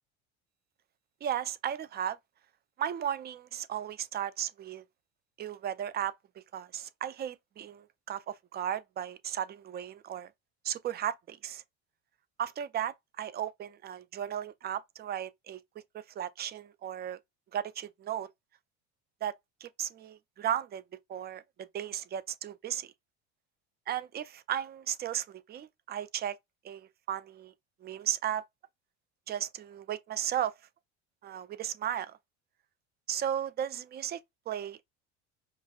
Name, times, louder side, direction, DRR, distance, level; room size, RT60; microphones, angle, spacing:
voice 1, 1.2-2.2 2.8-4.8 5.4-6.1 6.5-10.3 10.6-11.6 12.4-15.6 15.9-17.2 17.5-18.3 19.2-19.3 19.6-20.8 21.1-21.4 21.7-22.9 23.9-26.4 26.6-27.5 27.8-28.4 29.3-30.5 31.2-32.2 33.1-34.2 34.5-34.8, right 10 dB, 30° right, 0.4 m, -35 dB
5.2 x 2.2 x 2.3 m
hypercardioid pair, 85°, 35 cm